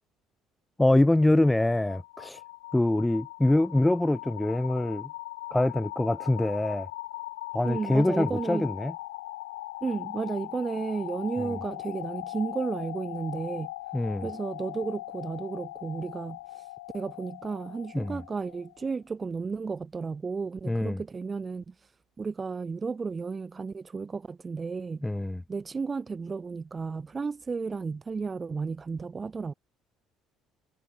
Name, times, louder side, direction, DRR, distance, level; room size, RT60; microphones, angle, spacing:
voice 1, 0.8-2.4 2.7-5.1 5.5-6.9 7.5-8.9 13.9-14.3 17.9-18.2 20.7-21.0 25.0-25.4, left 1 dB, 10° left, 0.9 m, -24 dB
sound 1, 1.0-18.9, left 18 dB, 70° left, 3.0 m, -40 dB
voice 2, 7.6-8.7 9.8-13.7 14.2-16.7 16.9-21.9 22.2-25.0 25.5-29.5, right 4 dB, 25° right, 2.8 m, -33 dB
figure-of-eight pair, 55°, 0 cm